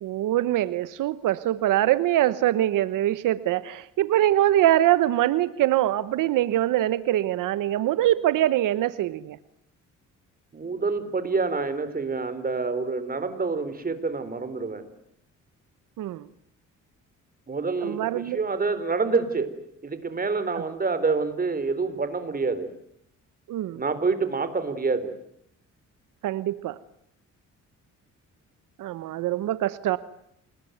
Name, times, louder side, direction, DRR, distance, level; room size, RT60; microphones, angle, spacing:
voice 1, 0.0-9.4 16.0-16.3 17.8-18.4 20.5-20.6 23.5-23.8 26.2-26.8 28.8-30.0, right 13 dB, 85° right, 15 dB, 1.1 m, -23 dB
voice 2, 10.5-14.8 17.5-19.5 19.8-22.7 23.8-25.1, right 4 dB, 30° right, 12 dB, 4.0 m, -27 dB
29.5 x 21.0 x 9.3 m, 0.74 s
cardioid pair, 110°, 31 cm